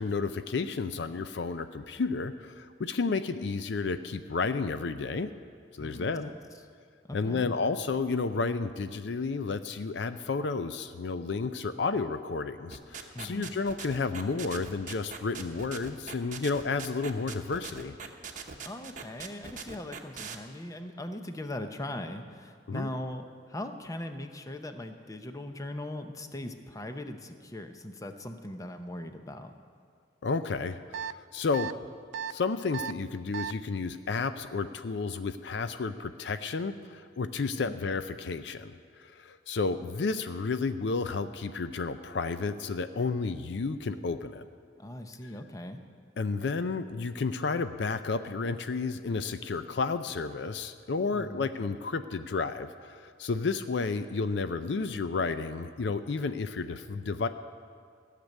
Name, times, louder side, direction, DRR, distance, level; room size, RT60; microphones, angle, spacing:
voice 1, 0.0-5.3 5.7-6.3 7.1-17.9 22.7-22.9 30.2-31.7 32.3-44.5 46.2-57.3, left 4 dB, 70° left, 10 dB, 0.5 m, -31 dB
voice 2, 5.8-6.4 7.0-7.5 13.1-13.5 18.6-29.5 37.6-37.8 44.8-45.8 51.1-51.5, left 1 dB, 20° left, 7 dB, 0.7 m, -40 dB
sound 1, 12.7-20.4, right 6 dB, 45° right, 1.0 m, -41 dB
sound 2, 30.9-31.1 31.5-31.7 32.1-32.3 32.7-32.9 33.3-33.5, right 8 dB, 75° right, 0.3 m, -34 dB
15.0 x 6.7 x 9.1 m, 2.1 s
head